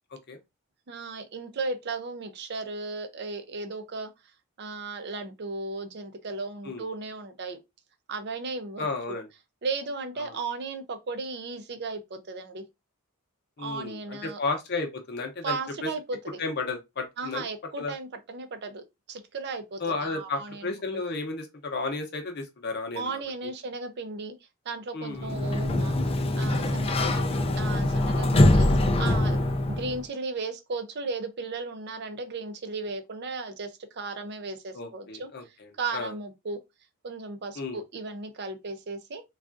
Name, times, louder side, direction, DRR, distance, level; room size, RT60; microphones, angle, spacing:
voice 1, 0.9-4.1 4.6-7.6 8.1-9.2 9.6-12.6 13.6-14.4 15.4-16.4 17.2-21.0 22.9-24.3 24.7-26.0 26.4-27.3 27.6-29.4 29.7-35.3 35.8-36.6 37.0-39.2, right 3 dB, 50° right, 0.5 m, -35 dB
voice 2, 8.8-9.3 10.2-10.3 13.6-15.6 16.4-17.4 17.8-17.9 19.8-23.2 24.9-25.3 27.0-27.4 34.7-36.1 37.6-37.8, left 3 dB, 50° left, 0.7 m, -33 dB
Sliding door, 25.1-30.0, left 1 dB, 25° left, 0.3 m, -23 dB
3.5 x 2.4 x 2.4 m
head